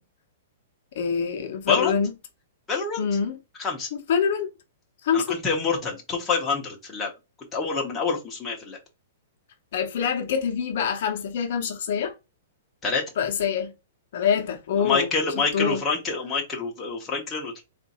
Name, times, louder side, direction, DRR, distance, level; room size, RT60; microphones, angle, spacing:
voice 1, 0.9-2.1 3.0-3.4 4.1-4.5 5.0-5.4 9.7-12.1 13.2-13.7 14.1-15.1 15.5-15.8, left 7 dB, 45° left, 0.7 m, -25 dB
voice 2, 1.7-2.0 2.7-3.1 3.6-3.9 5.1-7.1 7.5-8.8 12.8-13.0 14.8-17.6, left 4 dB, 10° left, 0.8 m, -27 dB
3.6 x 2.5 x 4.1 m
hypercardioid pair, 175°, 0 cm